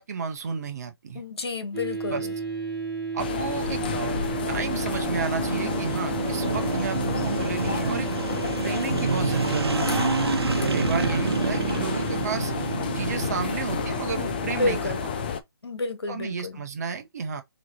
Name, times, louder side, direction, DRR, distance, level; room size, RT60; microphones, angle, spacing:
voice 1, 0.0-1.2 2.1-2.3 3.1-3.8 4.5-8.1 8.6-10.1 10.7-12.5 12.9-14.9 16.1-17.4, right 5 dB, 40° right, 1.1 m, -32 dB
voice 2, 1.1-2.3 14.5-15.0 15.6-16.6, left 3 dB, 85° left, 1.3 m, -30 dB
sound 1, 1.7-15.3, right 4 dB, 5° right, 1.5 m, -35 dB
sound 2, 3.2-15.4, left 7 dB, 25° left, 0.4 m, -31 dB
sound 3, 3.7-15.0, right 5 dB, 80° right, 1.0 m, -29 dB
3.8 x 3.2 x 4.3 m
hypercardioid pair, 165°, 13 cm